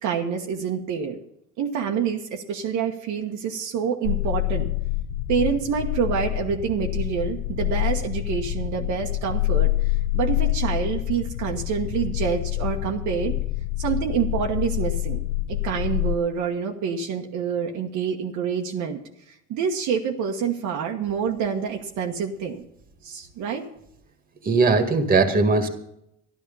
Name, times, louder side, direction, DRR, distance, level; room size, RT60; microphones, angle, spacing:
voice 1, 0.0-1.2 1.6-4.7 5.3-13.4 13.8-15.2 15.5-19.0 19.3-22.6 23.0-23.7, right 7 dB, 60° right, 2 dB, 1.4 m, -27 dB
sound 1, 4.0-16.2, left 16 dB, 70° left, 0.7 m, -26 dB
voice 2, 24.4-25.7, right 3 dB, 25° right, 7 dB, 2.0 m, -19 dB
12.5 x 12.0 x 5.5 m, 0.77 s
cardioid pair, 110°, 33 cm